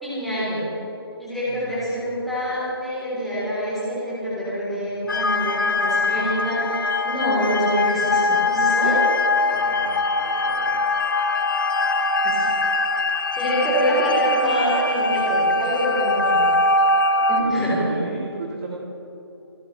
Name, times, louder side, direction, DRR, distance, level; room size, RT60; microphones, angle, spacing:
voice 1, 0.0-0.7 1.2-9.0 12.2-12.4 13.4-16.4 17.3-17.9, equal, ahead, -11 dB, 3.6 m, -25 dB
sound 1, 5.1-17.4, left 2 dB, 50° left, 1.5 m, -22 dB
voice 2, 9.4-10.8 17.4-18.7, right 3 dB, 35° right, -2 dB, 1.7 m, -34 dB
28.5 x 12.5 x 3.3 m, 2.9 s
figure-of-eight pair, 165°, 14 cm